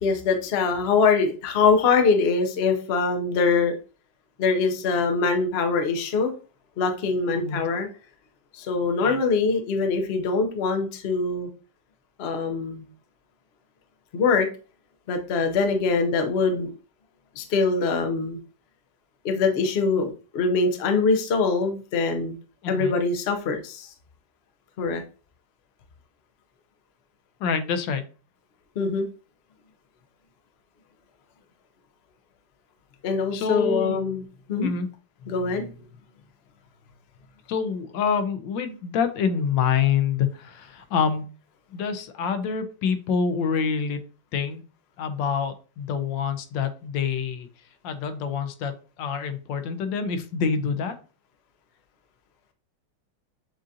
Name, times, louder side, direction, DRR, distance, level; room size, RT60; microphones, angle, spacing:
voice 1, 0.0-3.7 4.4-6.3 6.8-7.9 8.5-11.5 12.2-12.8 14.1-14.5 15.1-16.7 17.4-18.4 19.2-22.4 22.7-23.9 24.8-25.0 28.8-29.1 33.0-34.2 34.5-34.7 35.3-35.7, left 4 dB, 60° left, 5 dB, 0.7 m, -23 dB
voice 2, 7.3-7.7 9.0-9.2 22.6-23.0 27.4-28.0 33.3-34.0 34.6-34.9 37.5-41.3 41.7-44.0 44.3-44.6 45.0-47.5 47.8-48.7 49.0-50.9, left 6 dB, 85° left, 9 dB, 1.3 m, -26 dB
7.4 x 2.5 x 2.7 m, 0.36 s
omnidirectional pair, 2.0 m